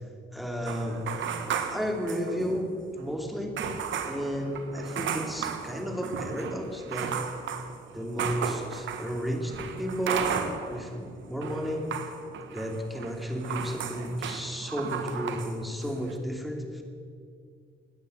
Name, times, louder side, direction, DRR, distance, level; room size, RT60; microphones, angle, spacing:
voice 1, 0.3-1.1 1.7-3.6 4.0-7.2 7.9-11.8 12.5-16.8, equal, ahead, 2 dB, 2.8 m, -33 dB
sound 1, 0.7-2.7 3.0-3.1 3.6-10.9 11.2-15.5 15.8-16.2, right 7 dB, 75° right, 1.5 m, -35 dB
17.5 x 9.9 x 8.1 m, 2.3 s
cardioid pair, 90°, 20 cm